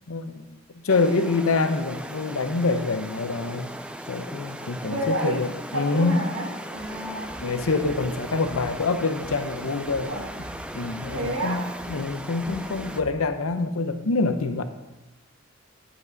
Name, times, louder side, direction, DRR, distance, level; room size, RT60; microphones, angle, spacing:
voice 1, 0.1-0.6 0.8-3.7 4.1-6.2 7.4-10.1 10.7-14.6, left 3 dB, 90° left, 9 dB, 0.7 m, -26 dB
sound 1, 0.9-13.0, right 1 dB, 5° right, 0.3 m, -38 dB
voice 2, 4.8-5.4 5.7-7.3 10.1-10.3 11.1-11.7, right 1 dB, 80° right, 0 dB, 1.8 m, -30 dB
sound 2, 6.8-13.2, right 1 dB, 25° right, 1.0 m, -45 dB
9.5 x 7.8 x 4.0 m, 1.0 s
head